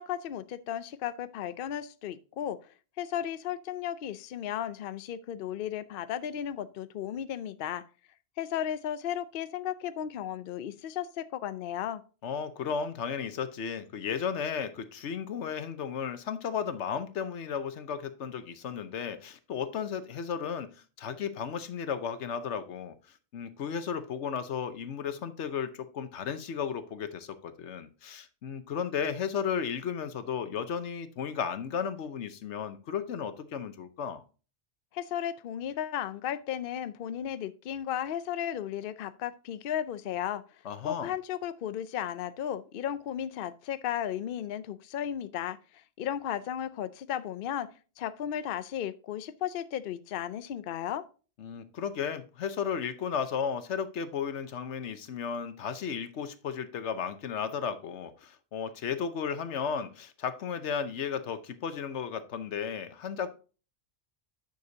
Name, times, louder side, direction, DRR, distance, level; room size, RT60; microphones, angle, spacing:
voice 1, 0.0-2.6 3.0-7.8 8.4-12.0 34.9-40.4 40.8-47.7 48.0-51.0, left 10 dB, 60° left, 0.7 m, -35 dB
voice 2, 12.2-20.7 21.0-22.9 23.3-34.2 40.6-41.1 51.4-63.3, left 7 dB, 85° left, 1.1 m, -34 dB
9.5 x 6.6 x 2.7 m
omnidirectional pair, 1.1 m